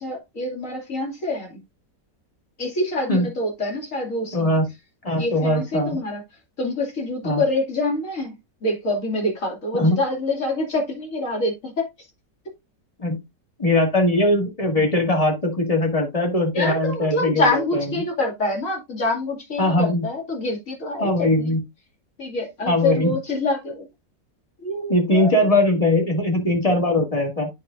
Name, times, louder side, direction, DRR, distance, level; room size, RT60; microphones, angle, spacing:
voice 1, 0.0-1.6 2.6-4.5 5.2-6.2 6.6-11.9 16.5-21.5 22.2-23.9 24.6-25.3, left 2 dB, 45° left, 2.7 m, -26 dB
voice 2, 4.3-4.7 5.0-6.0 7.2-7.4 9.7-10.0 13.0-13.2 13.6-17.9 19.6-20.1 21.0-21.6 22.6-23.2 24.9-27.5, left 1 dB, 20° left, 1.9 m, -20 dB
9.4 x 5.8 x 2.5 m
omnidirectional pair, 1.9 m